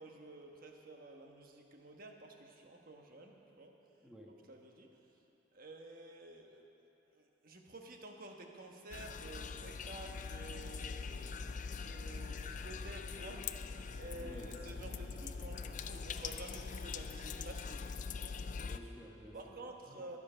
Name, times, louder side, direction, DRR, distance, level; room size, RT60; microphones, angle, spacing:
voice 1, 0.0-3.7 4.5-5.0 5.5-6.6 7.1-17.9 19.3-20.2, right 2 dB, 45° right, 2 dB, 1.2 m, -51 dB
voice 2, 4.0-4.3 14.2-14.5 18.5-19.6 19.9-20.1, equal, ahead, -2 dB, 1.2 m, -53 dB
sound 1, 8.9-18.8, left 5 dB, 40° left, 0.4 m, -43 dB
22.0 x 7.4 x 5.6 m, 2.9 s
head